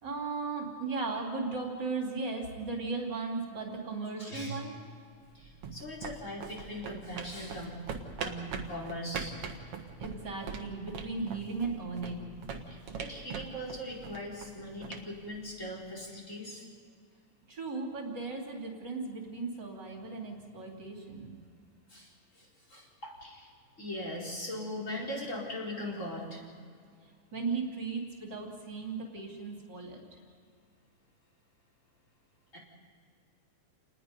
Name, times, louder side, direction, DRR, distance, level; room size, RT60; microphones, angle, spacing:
voice 1, 0.0-4.7 10.0-12.3 17.5-21.3 27.3-30.0, right 4 dB, 35° right, 0 dB, 3.6 m, -36 dB
voice 2, 4.2-4.6 5.3-7.8 8.2-9.3 12.7-16.6 21.9-23.5 23.8-26.4 32.5-32.6, left 1 dB, 25° left, -3 dB, 4.7 m, -40 dB
sound 1, 5.2-16.0, right 5 dB, 55° right, 2.2 m, -42 dB
29.0 x 20.0 x 5.3 m, 2.2 s
omnidirectional pair, 3.3 m